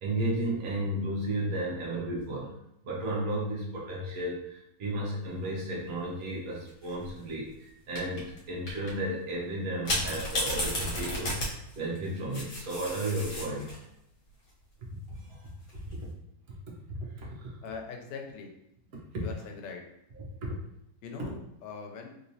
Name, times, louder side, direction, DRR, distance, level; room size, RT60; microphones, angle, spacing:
voice 1, 0.0-2.5 2.8-11.4 11.7-13.8 15.1-15.5 16.7-17.6 18.9-19.3 20.4-20.6 21.2-21.3, right 1 dB, 60° right, -3 dB, 1.3 m, -33 dB
sound 1, 6.7-7.1 7.9-8.4 8.7-8.9 9.8-13.8 15.5-15.9, left 1 dB, 55° left, 1.3 m, -33 dB
voice 2, 17.6-18.5 19.2-19.8 21.0-22.1, left 5 dB, 80° left, 2 dB, 1.3 m, -41 dB
3.3 x 2.9 x 2.6 m, 0.81 s
omnidirectional pair, 1.8 m